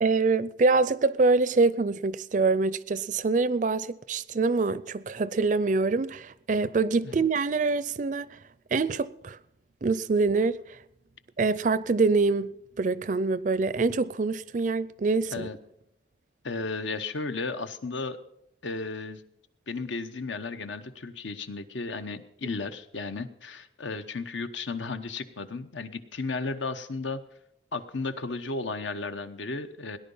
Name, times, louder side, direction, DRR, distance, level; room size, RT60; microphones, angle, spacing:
voice 1, 0.0-8.4 8.7-9.4 9.8-10.8 11.4-12.5 12.8-15.5, right 3 dB, 40° right, 0.4 m, -25 dB
voice 2, 16.4-18.2 18.6-19.2 19.7-27.2 27.7-30.0, left 3 dB, 80° left, 1.0 m, -34 dB
18.0 x 10.5 x 5.5 m
head